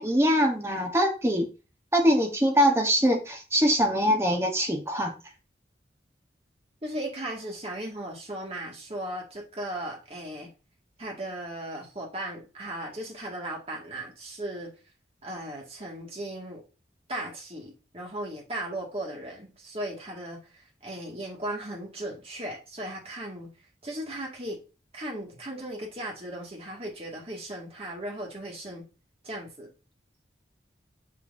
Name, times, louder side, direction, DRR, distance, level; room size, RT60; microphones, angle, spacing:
voice 1, 0.0-1.5 1.9-5.2, equal, 15° right, 3 dB, 1.1 m, -23 dB
voice 2, 6.8-10.5 11.0-14.7 15.2-16.6 17.1-20.4 20.8-23.5 23.8-24.6 24.9-28.9 29.2-29.7, right 1 dB, 35° right, -2 dB, 2.0 m, -37 dB
6.3 x 6.0 x 2.7 m, 0.33 s
head